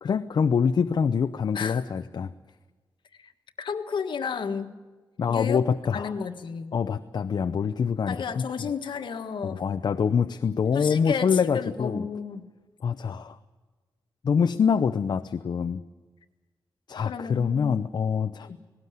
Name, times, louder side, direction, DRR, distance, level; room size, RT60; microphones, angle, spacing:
voice 1, 0.0-2.3 5.2-6.1 6.7-8.7 9.4-12.0 12.8-13.4 14.2-15.8 16.9-18.5, left 6 dB, 60° left, 9 dB, 0.7 m, -25 dB
voice 2, 3.6-4.8 5.3-5.6 5.9-6.7 8.1-9.6 10.7-12.5 17.0-17.9 18.5-18.6, left 6 dB, 75° left, 8 dB, 1.5 m, -32 dB
19.0 x 18.5 x 9.6 m, 1.3 s
wide cardioid pair, 130°, 8 cm